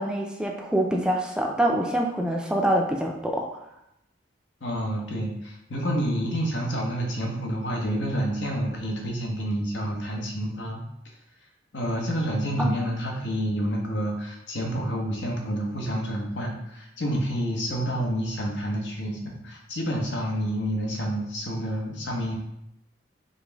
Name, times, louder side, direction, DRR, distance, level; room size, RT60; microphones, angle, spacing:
voice 1, 0.0-3.5 12.6-12.9, right 1 dB, 5° right, 1 dB, 0.3 m, -25 dB
voice 2, 4.6-11.1 11.7-22.4, equal, 85° left, 0 dB, 0.9 m, -29 dB
4.0 x 2.5 x 3.3 m, 0.80 s
head